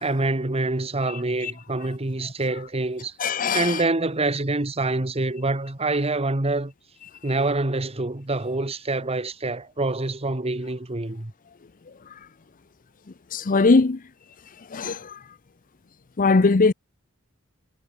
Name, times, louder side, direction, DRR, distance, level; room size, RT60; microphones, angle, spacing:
voice 1, 0.0-6.7 7.2-11.3, right 2 dB, 30° right, 1.4 m, -26 dB
voice 2, 3.2-3.8 13.3-14.0 14.7-15.2 16.2-16.7, left 3 dB, 40° left, 0.6 m, -20 dB
head